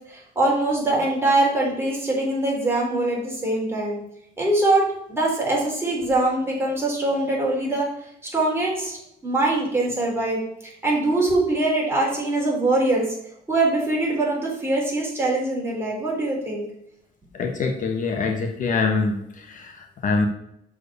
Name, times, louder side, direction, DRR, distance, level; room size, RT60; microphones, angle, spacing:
voice 1, 0.1-4.0 4.4-4.8 5.1-7.9 8.3-9.0 9.2-13.1 13.5-16.6, right 2 dB, 15° right, -4 dB, 3.7 m, -23 dB
voice 2, 17.3-20.3, left 4 dB, 50° left, 3 dB, 1.2 m, -24 dB
6.8 x 4.8 x 6.7 m, 0.77 s
cardioid pair, 110°, 17 cm